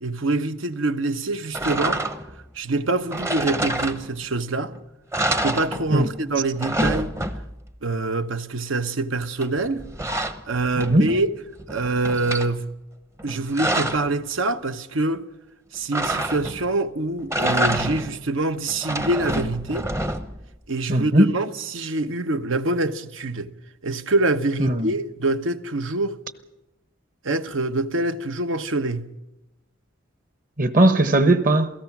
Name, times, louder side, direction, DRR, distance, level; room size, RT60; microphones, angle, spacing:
voice 1, 0.0-2.0 2.5-4.7 5.2-7.1 7.8-9.9 10.5-11.3 11.7-12.7 13.2-15.3 15.7-19.9 20.7-23.5 23.8-26.2 27.2-29.1, right 2 dB, 80° right, 1.0 m, -25 dB
sound 1, 1.5-2.4 3.1-4.4 4.7-4.8 5.1-6.2 6.4-7.7 9.4-11.2 11.6-12.5 13.2-14.1 15.9-16.7 17.2-18.2 18.7-20.5, right 1 dB, 15° right, 0.7 m, -27 dB
voice 2, 20.9-21.3 24.6-24.9 30.6-31.7, right 1 dB, 40° right, 1.1 m, -18 dB
27.5 x 17.5 x 6.0 m
head